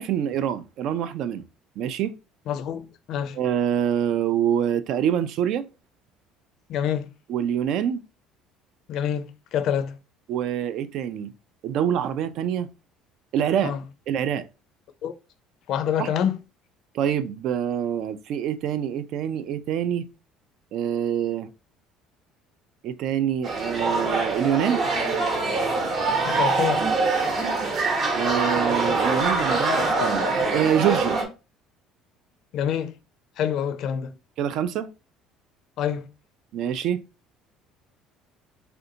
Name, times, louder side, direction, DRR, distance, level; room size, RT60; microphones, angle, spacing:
voice 1, 0.0-1.4 1.8-2.1 3.3-5.7 7.3-8.0 10.3-11.3 11.6-12.7 13.3-13.8 14.1-14.5 16.0-16.1 16.9-20.1 20.7-21.5 22.8-24.8 28.1-30.3 30.5-31.2 34.4-34.9 36.5-37.0, right 9 dB, 60° right, 0.3 m, -25 dB
voice 2, 2.5-3.4 6.7-7.1 8.9-10.0 13.6-13.8 15.0-15.1 15.7-16.4 26.3-26.9 32.5-33.0 33.4-34.1 35.8-36.1, left 9 dB, 60° left, 0.4 m, -26 dB
sound 1, 23.4-31.2, right 3 dB, 45° right, 0.8 m, -24 dB
3.3 x 2.5 x 2.7 m
cardioid pair, 130°, 0 cm